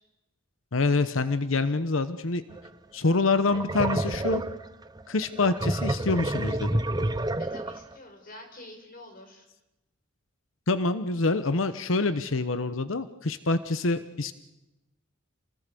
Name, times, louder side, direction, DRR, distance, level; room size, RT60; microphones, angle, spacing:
voice 1, 0.7-2.4 2.9-4.4 5.1-6.7 10.7-14.3, left 3 dB, 85° left, 12 dB, 1.0 m, -26 dB
sound 1, 2.5-2.7 3.1-8.0, right 1 dB, 20° right, 0.8 m, -29 dB
voice 2, 7.2-9.5, left 1 dB, 45° left, 4 dB, 5.0 m, -47 dB
28.0 x 20.0 x 6.9 m, 0.98 s
head